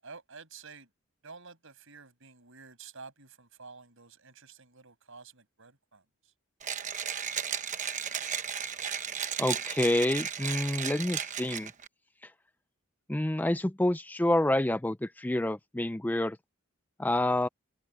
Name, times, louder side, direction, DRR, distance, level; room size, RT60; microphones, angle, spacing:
voice 1, 0.0-0.9 1.2-6.3, right 4 dB, 65° right, 7.6 m, -50 dB
Mechanisms, 6.6-11.9, right 8 dB, 35° right, 1.0 m, -34 dB
voice 2, 9.4-11.7 13.1-16.4 17.0-17.5, left 1 dB, 10° left, 0.4 m, -28 dB
head